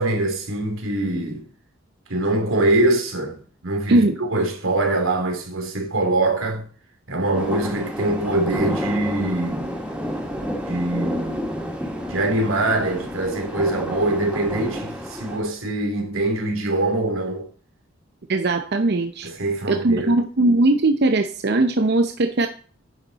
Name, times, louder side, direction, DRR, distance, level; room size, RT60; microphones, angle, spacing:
voice 1, 0.0-1.5 2.1-6.6 7.1-9.7 10.6-11.5 12.1-17.5 19.2-20.2, right 2 dB, 90° right, 3.0 m, -23 dB
sound 1, 7.3-15.4, equal, 5° right, 2.5 m, -30 dB
voice 2, 18.3-22.5, right 2 dB, 55° right, 0.7 m, -20 dB
10.0 x 7.7 x 4.1 m
head